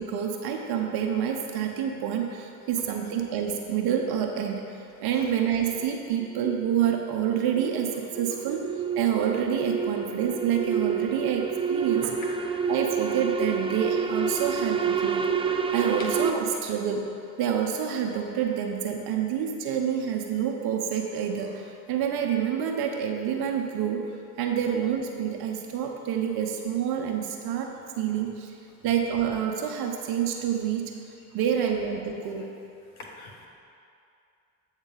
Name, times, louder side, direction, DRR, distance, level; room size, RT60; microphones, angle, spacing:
voice 1, 0.0-4.6 5.0-8.7 9.0-12.1 12.7-15.3 15.7-17.1 17.4-24.0 24.4-28.5 28.8-30.9 31.3-32.5, right 8 dB, 65° right, 2 dB, 0.8 m, -28 dB
sound 1, 5.8-16.3, right 6 dB, 15° right, 0.4 m, -29 dB
voice 2, 12.0-12.4 16.0-16.1 33.2-33.5, left 3 dB, 90° left, 0 dB, 1.0 m, -42 dB
8.2 x 3.7 x 6.4 m, 2.6 s
hypercardioid pair, 55°, 42 cm